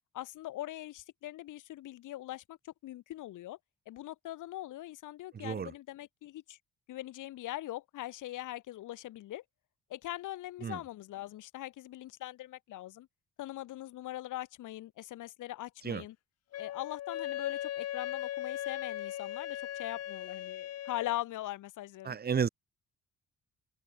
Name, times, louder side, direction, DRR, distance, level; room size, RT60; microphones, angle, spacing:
voice 1, 0.1-3.6 3.9-6.6 6.9-9.4 9.9-13.1 13.4-16.1 16.6-22.2, left 15 dB, 85° left, 6.0 m, -41 dB
voice 2, 5.3-5.7 10.6-10.8 15.8-16.0 22.0-22.5, right 7 dB, 30° right, 0.8 m, -32 dB
Wind instrument woodwind instrument, 16.5-21.2, left 12 dB, 55° left, 0.7 m, -38 dB
cardioid pair, 90°, 30 cm